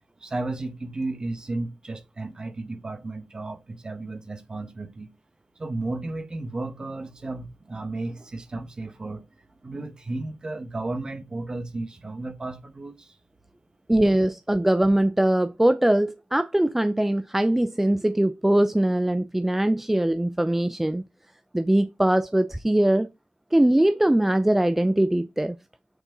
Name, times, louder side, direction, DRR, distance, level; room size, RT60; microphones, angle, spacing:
voice 1, 0.2-5.1 5.6-13.2, right 2 dB, 30° right, 1.4 m, -33 dB
voice 2, 13.9-21.0 21.5-23.1 23.5-25.6, right 1 dB, 10° right, 0.5 m, -21 dB
8.0 x 4.5 x 3.8 m
cardioid pair, 90°, 3 cm